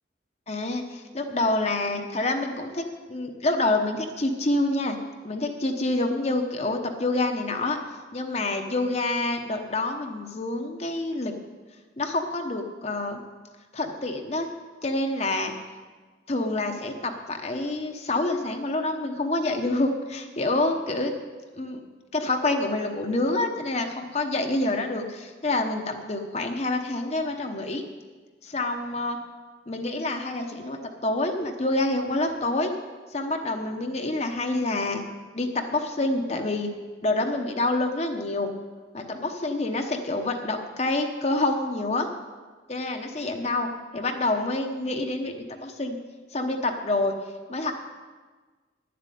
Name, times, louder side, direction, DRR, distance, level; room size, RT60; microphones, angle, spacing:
voice 1, 0.5-5.0 5.2-7.8 8.1-11.3 12.0-13.2 13.7-14.5 14.8-15.5 16.3-21.1 21.6-21.8 22.1-27.8 28.4-29.2 29.7-32.7 33.1-35.0 35.3-36.7 37.0-38.5 38.9-42.1 42.7-46.0 46.3-47.1 47.5-47.7, left 2 dB, 35° left, 4 dB, 0.9 m, -27 dB
10.0 x 7.7 x 9.2 m, 1.4 s
head